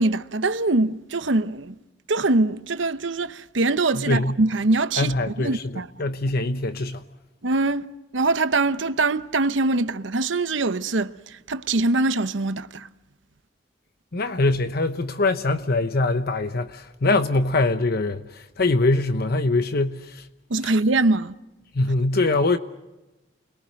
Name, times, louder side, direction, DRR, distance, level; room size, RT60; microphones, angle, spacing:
voice 1, 0.0-1.7 2.1-5.9 7.4-7.9 8.1-12.9 20.5-21.3, right 2 dB, 85° right, 0.9 m, -23 dB
voice 2, 3.9-4.4 5.0-7.0 14.1-20.3 20.6-20.7 21.7-22.6, left 2 dB, 55° left, 1.0 m, -23 dB
29.5 x 22.0 x 6.5 m
head